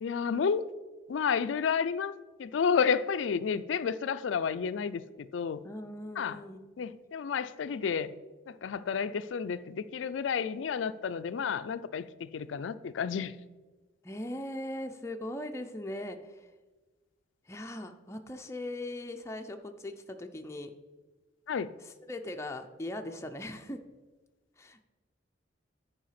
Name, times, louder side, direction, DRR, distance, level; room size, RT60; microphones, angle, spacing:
voice 1, 0.0-0.6 1.1-2.1 2.4-5.6 6.2-6.4 6.8-8.1 8.5-13.3 21.5-21.7, left 6 dB, 90° left, 12 dB, 0.4 m, -31 dB
voice 2, 5.6-6.7 14.0-16.2 17.5-20.7 22.1-23.8 24.6-24.8, left 1 dB, 15° left, 5 dB, 0.5 m, -39 dB
10.0 x 4.8 x 5.8 m, 1.2 s
head